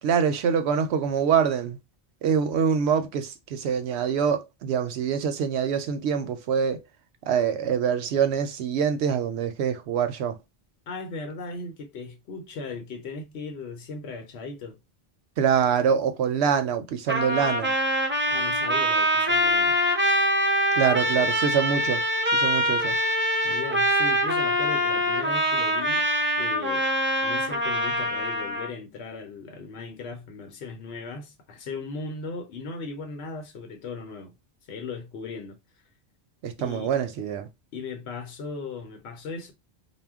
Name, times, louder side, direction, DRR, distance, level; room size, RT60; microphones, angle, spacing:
voice 1, 0.0-1.8 2.2-6.8 7.3-10.4 15.4-17.7 20.8-22.0 22.3-23.0 36.4-37.5, right 7 dB, 85° right, 0.8 m, -25 dB
voice 2, 10.9-14.8 18.3-19.8 23.4-26.0 26.4-26.9 27.2-34.3 34.7-35.6 36.6-36.9 37.7-39.5, left 4 dB, 85° left, 0.9 m, -37 dB
Trumpet, 17.1-28.7, equal, 15° right, 0.4 m, -24 dB
2.1 x 2.1 x 3.5 m
omnidirectional pair, 1.1 m